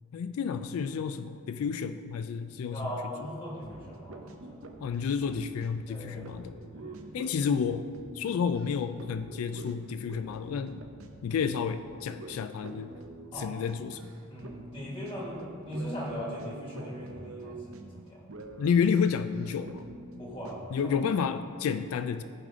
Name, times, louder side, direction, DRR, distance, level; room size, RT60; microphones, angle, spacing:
voice 1, 0.1-2.8 4.8-6.5 7.1-7.9 8.1-10.8 11.2-12.9 13.4-14.1 18.6-19.9 20.7-22.2, left 6 dB, 80° left, 11 dB, 0.3 m, -30 dB
voice 2, 2.7-4.6 5.9-7.1 13.3-13.5 14.3-18.2 20.2-21.0, equal, 25° left, -3 dB, 1.8 m, -39 dB
sound 1, 3.6-21.3, right 2 dB, 70° right, 0.7 m, -46 dB
14.5 x 5.0 x 3.6 m, 2.3 s
head